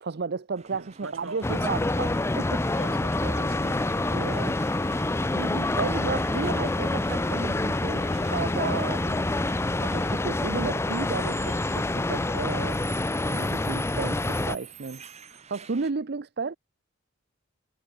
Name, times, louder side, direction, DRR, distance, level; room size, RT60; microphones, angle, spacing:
voice 1, 0.0-2.6 4.1-9.2 9.8-12.8 13.3-15.0 15.3-16.6, right 4 dB, 55° right, 0.6 m, -33 dB
sound 1, 0.6-15.9, right 5 dB, 35° right, 2.1 m, -46 dB
voice 2, 0.7-2.1 2.7-3.8, right 3 dB, 80° right, 4.1 m, -42 dB
sound 2, 1.4-14.6, left 2 dB, 15° left, 0.5 m, -27 dB
head